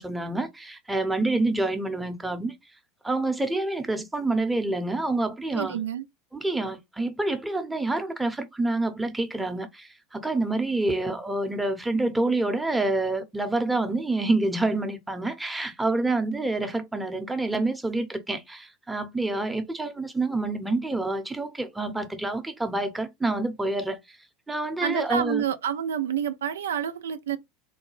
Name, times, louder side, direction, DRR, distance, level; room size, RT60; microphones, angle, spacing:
voice 1, 0.0-2.5 3.0-5.8 6.3-24.2 24.5-25.4, right 2 dB, 10° right, 0.8 m, -27 dB
voice 2, 5.5-6.0 24.8-27.4, right 8 dB, 80° right, 0.4 m, -28 dB
3.7 x 2.2 x 3.1 m
hypercardioid pair, 85°, 0 cm